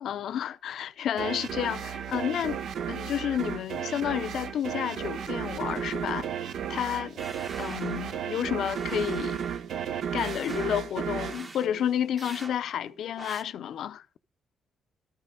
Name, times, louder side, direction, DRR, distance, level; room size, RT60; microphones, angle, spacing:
voice 1, 0.0-2.6 2.9-6.3 6.7-7.2 7.6-9.4 10.1-14.1, left 10 dB, 70° left, 0.6 m, -31 dB
sound 1, 1.2-12.4, right 8 dB, 70° right, 0.7 m, -34 dB
sound 2, 7.2-8.3 8.7-9.6 10.2-10.8 11.2-11.7 12.2-12.6 13.2-13.4, right 2 dB, 30° right, 1.2 m, -44 dB
13.0 x 9.7 x 3.8 m
cardioid pair, 90°, 0 cm